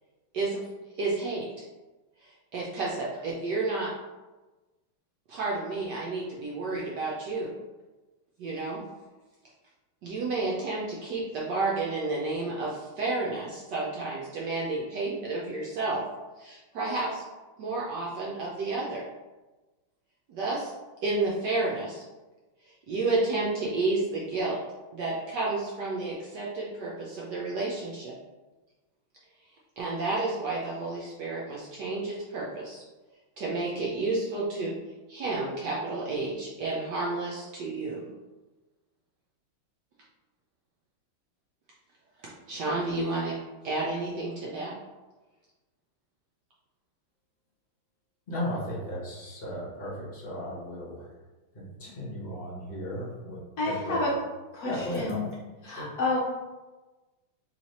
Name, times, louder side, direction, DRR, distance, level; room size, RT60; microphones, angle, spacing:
voice 1, 1.0-1.5 2.2-3.9 5.3-7.5 8.4-8.8 10.0-16.0 16.4-17.2 17.6-19.0 20.3-20.7 21.0-22.0 22.9-24.6 24.9-28.2 29.8-32.8 33.4-34.7 35.1-38.1 42.2-43.3 43.6-44.7, right 3 dB, 70° right, -4 dB, 1.1 m, -31 dB
voice 2, 48.3-51.1 51.5-53.4 53.6-54.0 54.6-55.3 55.7-55.9, equal, 40° left, -4 dB, 0.9 m, -35 dB
voice 3, 53.6-54.1 54.5-55.2 55.6-56.2, left 3 dB, 70° left, -4 dB, 0.9 m, -29 dB
3.2 x 3.2 x 4.1 m, 1.2 s
omnidirectional pair, 2.2 m